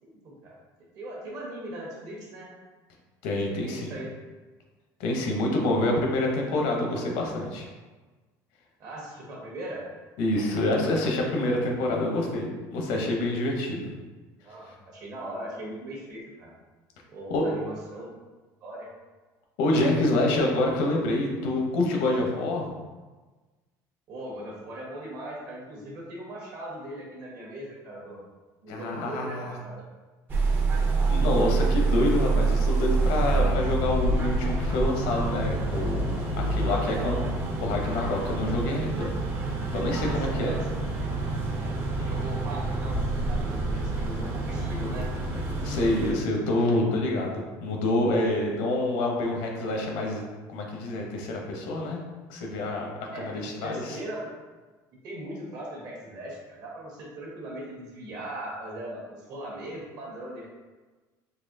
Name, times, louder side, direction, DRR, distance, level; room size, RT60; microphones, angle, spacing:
voice 1, 0.0-0.6 0.9-2.5 3.6-4.1 8.8-9.8 14.4-16.5 17.1-18.1 18.6-18.9 24.1-28.2 28.6-29.8 36.4-37.2 39.9-40.9 42.0-43.0 43.3-45.1 53.1-54.3 55.0-60.5, right 1 dB, 50° right, -3 dB, 1.1 m, -39 dB
voice 2, 3.2-4.0 5.0-7.7 10.2-13.9 14.7-14.8 17.3-17.4 19.6-22.7 28.7-29.5 31.1-37.2 37.6-39.1 39.7-40.6 45.6-50.2 50.5-52.0 52.3-52.9 53.1-54.0, left 1 dB, 80° left, 1 dB, 0.8 m, -27 dB
sound 1, 30.3-46.1, right 3 dB, 25° right, 0.5 m, -27 dB
4.1 x 2.8 x 2.6 m, 1.3 s
cardioid pair, 155°, 8 cm